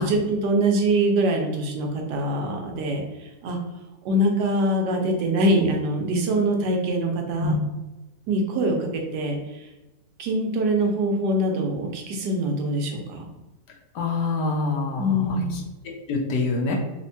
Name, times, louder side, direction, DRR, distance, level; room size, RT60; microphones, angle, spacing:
voice 1, 0.0-3.6 4.0-7.5 8.3-9.4 10.2-13.3 15.0-15.6, right 1 dB, 80° right, 2 dB, 1.2 m, -24 dB
voice 2, 13.9-15.6 16.1-16.7, left 3 dB, 80° left, 1 dB, 1.2 m, -26 dB
3.5 x 2.1 x 2.6 m, 1.1 s
omnidirectional pair, 1.8 m